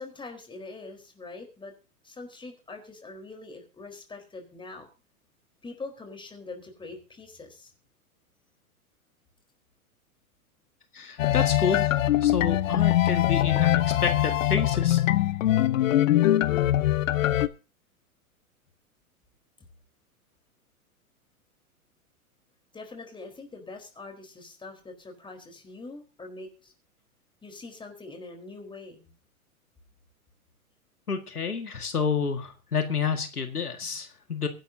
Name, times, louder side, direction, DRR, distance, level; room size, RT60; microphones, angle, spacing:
voice 1, 0.0-1.7 2.0-4.9 5.6-7.7 22.7-26.7 27.4-29.1, left 3 dB, 10° left, 4 dB, 4.1 m, -43 dB
voice 2, 10.9-11.9 12.2-15.0 31.1-34.5, left 6 dB, 85° left, 7 dB, 2.0 m, -29 dB
sound 1, 11.2-17.5, left 13 dB, 60° left, 1.0 m, -22 dB
23.0 x 11.5 x 2.7 m, 0.33 s
figure-of-eight pair, 105°, 44 cm